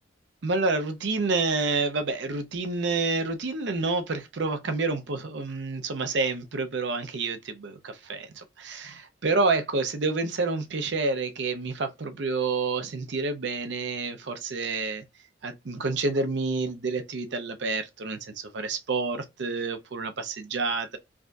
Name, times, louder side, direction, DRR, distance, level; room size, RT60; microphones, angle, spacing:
voice 1, 0.4-15.0 15.4-21.0, right 3 dB, 65° right, 0.6 m, -28 dB
4.7 x 2.6 x 2.3 m
head